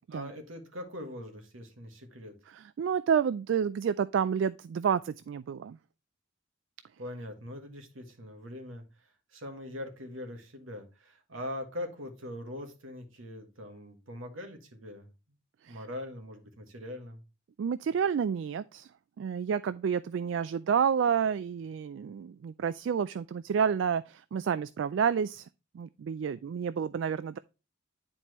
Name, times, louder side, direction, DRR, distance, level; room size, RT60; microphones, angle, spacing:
voice 1, 0.1-2.3 7.0-15.1 15.7-17.2, left 1 dB, 85° right, 1.7 m, -42 dB
voice 2, 2.5-5.8 15.6-15.8 17.6-18.9 19.2-25.5 25.7-27.4, right 7 dB, 70° right, 0.3 m, -29 dB
9.9 x 4.4 x 3.0 m
head